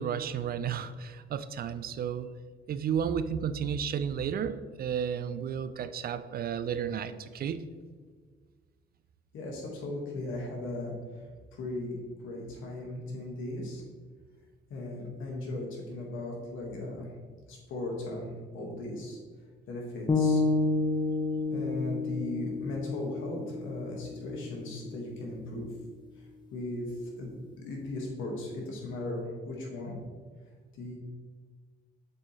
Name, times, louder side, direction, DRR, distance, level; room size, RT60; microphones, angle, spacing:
voice 1, 0.0-2.4 2.7-7.6, right 8 dB, 50° right, 12 dB, 0.4 m, -32 dB
voice 2, 9.3-11.2 11.5-12.0 12.2-13.8 14.7-17.1 17.5-19.2 19.7-20.4 21.5-25.7 26.2-26.3 26.5-26.9 27.2-30.0 30.7-31.0, left 2 dB, 85° left, -1 dB, 1.5 m, -37 dB
sound 1, 20.1-24.2, left 3 dB, 25° left, 0.6 m, -29 dB
7.3 x 4.2 x 3.1 m, 1.5 s
cardioid pair, 90°, 20 cm